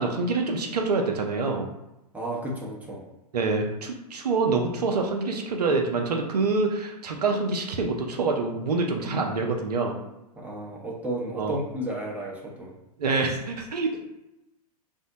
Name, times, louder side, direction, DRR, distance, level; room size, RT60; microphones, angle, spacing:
voice 1, 0.0-1.7 3.3-9.9 11.4-11.6 13.0-14.0, right 3 dB, 75° right, 2 dB, 0.5 m, -26 dB
voice 2, 2.1-3.0 10.4-12.7, right 1 dB, 5° right, -3 dB, 0.7 m, -33 dB
3.4 x 2.0 x 2.8 m, 0.92 s
figure-of-eight pair, 105°, 20 cm